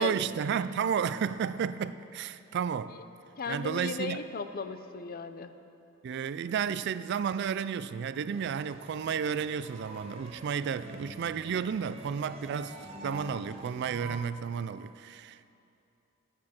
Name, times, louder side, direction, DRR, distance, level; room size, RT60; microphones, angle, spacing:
voice 1, 0.0-2.9 3.5-4.2 6.0-15.5, right 7 dB, 60° right, 0.3 m, -32 dB
voice 2, 3.4-5.5, left 4 dB, 50° left, 0.5 m, -36 dB
sound 1, 8.3-14.2, equal, 30° right, 0.9 m, -46 dB
14.0 x 8.6 x 4.3 m
head